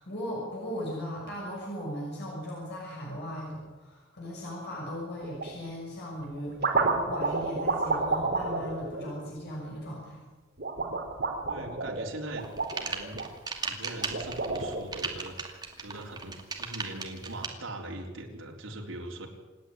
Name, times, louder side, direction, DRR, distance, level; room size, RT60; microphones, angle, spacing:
voice 1, 0.0-10.2, equal, 55° left, -3 dB, 6.2 m, -38 dB
sound 1, 5.2-5.6 6.2-9.8 10.6-13.3 13.9-15.2, right 3 dB, 55° right, 3.7 m, -30 dB
voice 2, 11.5-12.5 12.8-13.2 13.6-19.3, right 2 dB, 80° right, 0 dB, 3.8 m, -41 dB
sound 2, 12.4-17.5, right 4 dB, 20° right, 2.5 m, -36 dB
27.0 x 9.9 x 9.8 m, 1.2 s
head